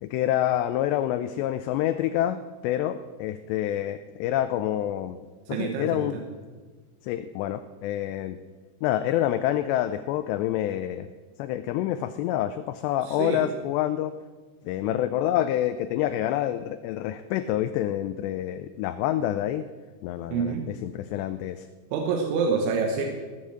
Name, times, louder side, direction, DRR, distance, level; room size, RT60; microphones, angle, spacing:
voice 1, 0.0-5.2 5.6-6.2 7.0-8.4 8.8-11.1 11.4-14.1 14.7-19.6 20.0-20.5 20.8-21.7, left 12 dB, 80° left, 10 dB, 2.6 m, -27 dB
voice 2, 5.5-6.2 13.0-13.5 20.3-20.7 21.9-23.1, right 5 dB, 85° right, 2 dB, 3.6 m, -27 dB
18.0 x 7.5 x 7.8 m, 1.4 s
omnidirectional pair, 5.3 m